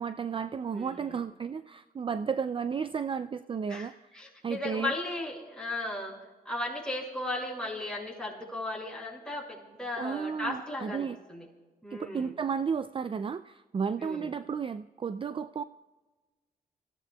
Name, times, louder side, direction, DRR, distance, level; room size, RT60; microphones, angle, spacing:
voice 1, 0.0-3.9 4.4-4.9 10.0-11.2 11.9-15.6, right 6 dB, 35° right, 12 dB, 0.3 m, -33 dB
voice 2, 0.7-1.1 3.7-6.2 6.5-11.4 11.8-12.3 14.0-14.3, left 2 dB, 5° left, -3 dB, 5.6 m, -36 dB
25.0 x 16.0 x 2.3 m, 1.3 s
cardioid pair, 80°, 16 cm